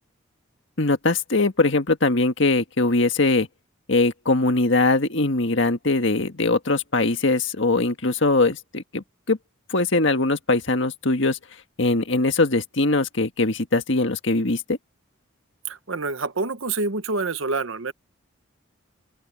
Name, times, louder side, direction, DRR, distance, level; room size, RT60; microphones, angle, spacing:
voice 1, 0.8-3.5 3.9-9.4 9.7-11.4 11.8-14.8, left 2 dB, 60° left, 1.7 m, -21 dB
voice 2, 15.6-17.9, right 3 dB, 70° right, 1.0 m, -27 dB
open air
head